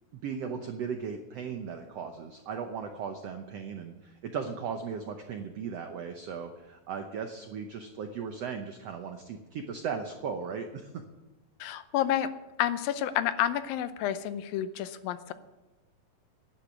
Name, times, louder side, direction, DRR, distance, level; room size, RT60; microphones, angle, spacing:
voice 1, 0.2-10.9, right 6 dB, 90° right, 6 dB, 1.4 m, -37 dB
voice 2, 11.6-12.3 12.6-15.3, left 11 dB, 80° left, 12 dB, 2.5 m, -29 dB
11.5 x 10.0 x 8.1 m, 1.1 s
omnidirectional pair, 4.1 m